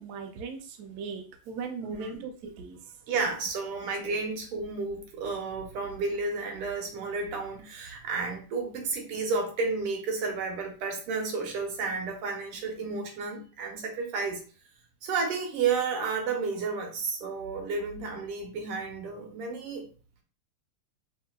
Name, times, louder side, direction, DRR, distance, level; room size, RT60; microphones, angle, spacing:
voice 1, 0.0-2.8, right 5 dB, 70° right, 5 dB, 1.0 m, -39 dB
voice 2, 1.8-2.2 3.1-14.4 15.0-19.9, right 4 dB, 85° right, 3 dB, 1.9 m, -32 dB
5.5 x 2.6 x 2.3 m, 0.38 s
omnidirectional pair, 2.4 m